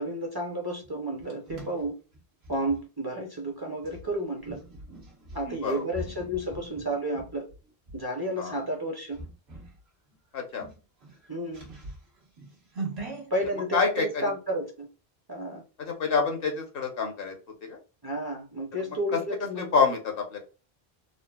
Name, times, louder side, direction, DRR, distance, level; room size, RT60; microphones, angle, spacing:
voice 1, 0.0-2.0 2.5-4.6 5.3-7.5 7.9-9.2 11.3-11.6 13.3-14.9 15.3-15.6 18.0-19.7, right 1 dB, 30° right, 0.6 m, -31 dB
sound 1, 0.8-2.8 3.8-8.0 8.5-8.8 9.1-9.8 10.1-10.2 10.5-13.5, right 2 dB, 85° right, 1.3 m, -42 dB
voice 2, 5.4-5.9 8.4-8.6 10.3-10.7 13.7-14.3 15.8-17.3 17.6-17.8 18.8-19.2 19.6-20.4, left 5 dB, 65° left, 1.0 m, -27 dB
3.7 x 2.0 x 2.2 m
omnidirectional pair, 1.0 m